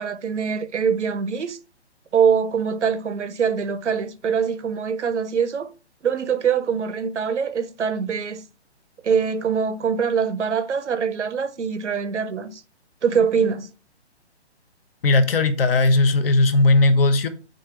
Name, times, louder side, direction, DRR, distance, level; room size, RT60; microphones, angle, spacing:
voice 1, 0.0-1.6 2.1-5.7 6.0-8.4 9.0-12.6 13.0-13.7, right 6 dB, 90° right, 0.7 m, -23 dB
voice 2, 15.0-17.3, left 2 dB, 55° left, 0.8 m, -17 dB
4.3 x 3.7 x 3.3 m
figure-of-eight pair, 140°, 34 cm